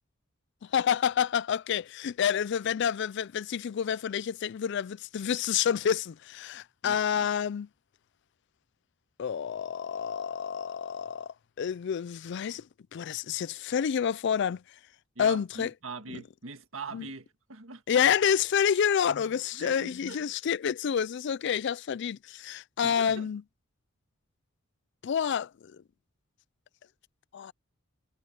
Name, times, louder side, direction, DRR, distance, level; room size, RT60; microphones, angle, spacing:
voice 1, 0.7-7.7 9.2-11.3 11.6-12.6 12.9-14.6 15.2-15.7 16.1-16.2 16.9-17.1 17.9-23.4 25.0-25.5 27.3-27.5, left 8 dB, 60° left, 0.4 m, -28 dB
voice 2, 6.8-7.3 15.2-17.8 19.5-20.2 22.8-23.3, right 4 dB, 80° right, 1.7 m, -42 dB
head